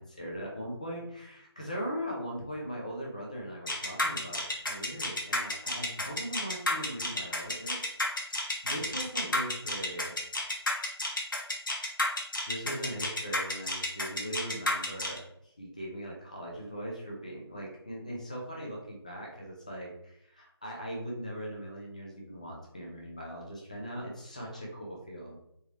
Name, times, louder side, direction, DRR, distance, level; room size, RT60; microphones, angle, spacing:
voice 1, 0.0-10.2 12.5-25.4, equal, 15° left, -3 dB, 0.4 m, -40 dB
sound 1, 3.7-15.2, left 1 dB, 50° left, 0.7 m, -31 dB
3.3 x 2.9 x 3.0 m, 0.78 s
figure-of-eight pair, 160°, 14 cm